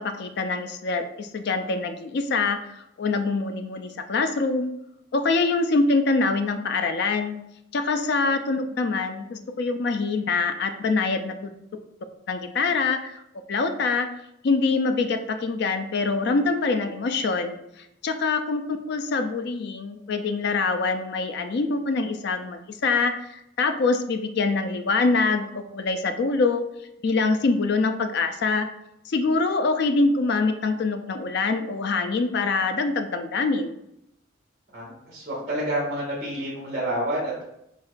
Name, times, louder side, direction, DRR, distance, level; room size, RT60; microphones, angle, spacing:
voice 1, 0.0-4.7 5.1-7.4 7.7-11.4 12.3-13.2 13.5-14.1 14.4-26.7 27.0-28.7 29.1-33.8, left 3 dB, 60° left, 8 dB, 0.4 m, -24 dB
voice 2, 34.7-37.4, right 1 dB, 45° right, -8 dB, 1.6 m, -29 dB
7.1 x 2.4 x 2.4 m, 0.83 s
head